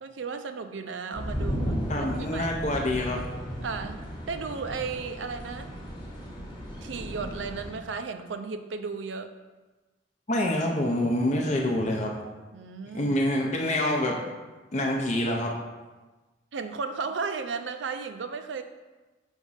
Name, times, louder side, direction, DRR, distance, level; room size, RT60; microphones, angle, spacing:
voice 1, 0.0-1.8 2.2-2.5 3.6-5.7 6.8-9.3 12.5-13.1 16.5-18.6, right 5 dB, 85° right, 8 dB, 0.5 m, -34 dB
sound 1, 1.1-7.7, equal, 25° left, 1.2 m, -35 dB
voice 2, 1.9-3.2 10.3-12.1 12.9-14.2 14.7-15.6, left 1 dB, 40° left, 0 dB, 0.6 m, -26 dB
6.1 x 3.6 x 5.5 m, 1.2 s
head